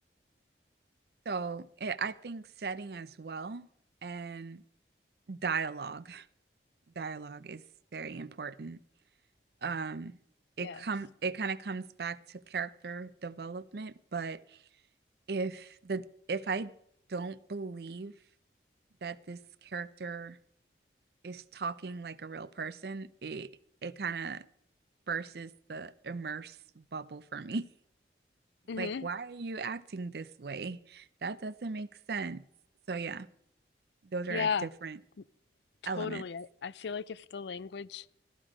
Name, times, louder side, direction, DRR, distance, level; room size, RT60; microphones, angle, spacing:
voice 1, 1.3-3.7 4.0-4.6 5.3-6.3 7.0-7.6 7.9-8.8 9.6-10.1 10.6-14.4 15.3-16.7 17.1-18.1 19.0-20.4 21.2-23.5 23.8-24.5 25.1-27.7 28.8-32.4 32.9-33.3 34.1-35.0 35.9-36.2, right 4 dB, 60° right, 0.5 m, -37 dB
voice 2, 28.7-29.1 34.3-34.7 35.2-35.3 35.8-38.1, left 6 dB, 75° left, 0.5 m, -36 dB
13.5 x 12.0 x 4.9 m
head